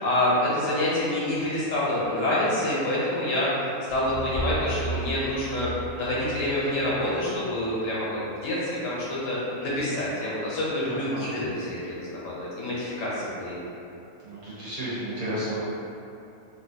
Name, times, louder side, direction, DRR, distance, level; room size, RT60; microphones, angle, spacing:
voice 1, 0.0-3.5 3.9-5.7 6.0-13.7, left 1 dB, 65° left, -7 dB, 1.1 m, -27 dB
sound 1, 3.9-8.0, right 2 dB, 50° right, 1.3 m, -35 dB
voice 2, 14.2-15.6, right 1 dB, 75° right, -11 dB, 1.6 m, -32 dB
3.1 x 2.6 x 2.7 m, 2.8 s
omnidirectional pair, 1.5 m